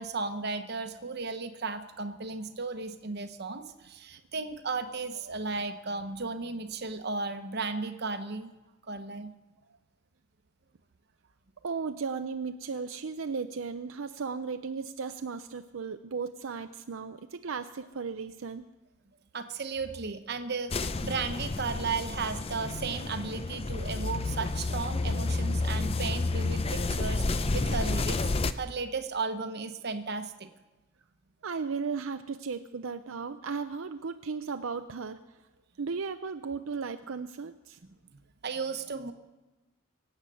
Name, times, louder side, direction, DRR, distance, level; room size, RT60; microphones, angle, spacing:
voice 1, 0.0-8.5 8.9-9.3 19.3-28.2 28.6-30.5 38.1-39.1, right 4 dB, 50° right, 8 dB, 1.0 m, -35 dB
voice 2, 11.6-18.6 31.4-35.2 35.8-37.8, right 5 dB, 75° right, 8 dB, 0.6 m, -35 dB
sound 1, 20.7-28.5, left 3 dB, 30° left, 0.5 m, -30 dB
24.5 x 8.1 x 6.3 m, 1.1 s
head